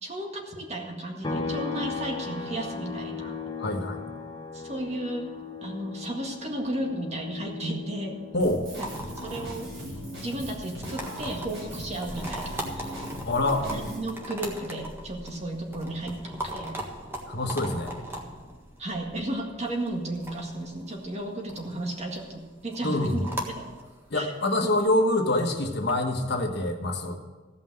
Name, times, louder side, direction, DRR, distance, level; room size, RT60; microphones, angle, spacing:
voice 1, 0.0-3.3 4.5-5.3 5.6-8.2 9.2-9.7 10.2-13.1 13.6-16.8 18.8-23.6 24.1-24.3 24.6-24.7, right 1 dB, 35° right, 1 dB, 1.8 m, -34 dB
sound 1, 1.2-14.8 15.1-17.3, left 4 dB, 25° left, 1.0 m, -39 dB
voice 2, 3.6-4.0 8.3-8.6 13.3-13.7 17.3-17.9 22.8-23.3 24.1-27.2, left 1 dB, 60° left, 4 dB, 1.3 m, -26 dB
Drum kit, 8.4-14.0, equal, 80° right, 4.4 m, -39 dB
sound 2, 8.8-25.9, right 1 dB, 15° right, 1.6 m, -40 dB
15.0 x 5.7 x 7.7 m, 1.3 s
head